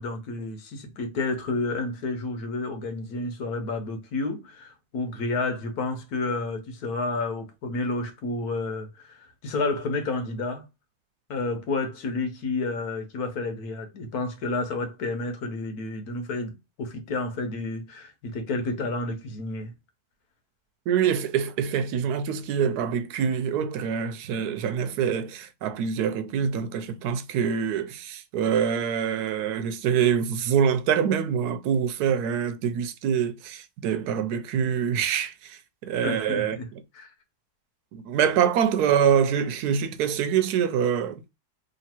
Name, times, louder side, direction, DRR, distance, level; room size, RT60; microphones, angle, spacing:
voice 1, 0.0-10.6 11.3-19.7 36.0-36.7 36.9-37.1, left 3 dB, 70° left, 1.5 m, -30 dB
voice 2, 20.9-36.6 37.9-41.3, right 8 dB, 80° right, 1.2 m, -25 dB
3.2 x 2.9 x 4.3 m
omnidirectional pair, 1.7 m